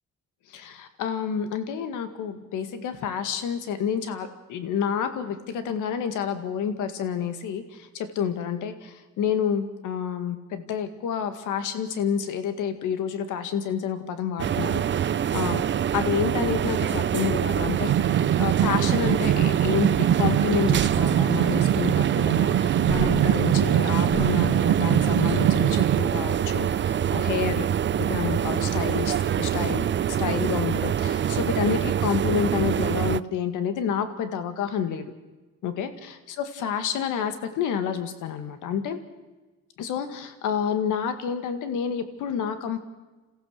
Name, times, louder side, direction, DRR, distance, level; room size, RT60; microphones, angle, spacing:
voice 1, 0.5-15.6 15.9-35.1 35.6-39.0 39.8-42.8, left 8 dB, 90° left, 9 dB, 2.0 m, -29 dB
sound 1, 14.4-33.2, right 9 dB, 40° right, 0.6 m, -25 dB
sound 2, 17.6-26.0, right 11 dB, 80° right, 1.0 m, -23 dB
28.5 x 15.0 x 6.6 m, 1.2 s
cardioid pair, 90°, 30 cm